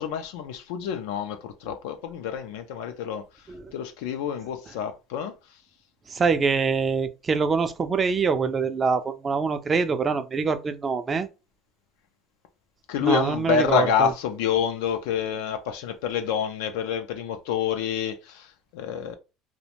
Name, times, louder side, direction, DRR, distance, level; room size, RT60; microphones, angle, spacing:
voice 1, 0.0-3.2 3.7-5.3 12.9-19.1, left 8 dB, 90° left, 0.3 m, -28 dB
voice 2, 6.1-11.3 13.0-14.1, right 5 dB, 25° right, 0.4 m, -24 dB
2.4 x 2.1 x 2.8 m
cardioid pair, 125°, 0 cm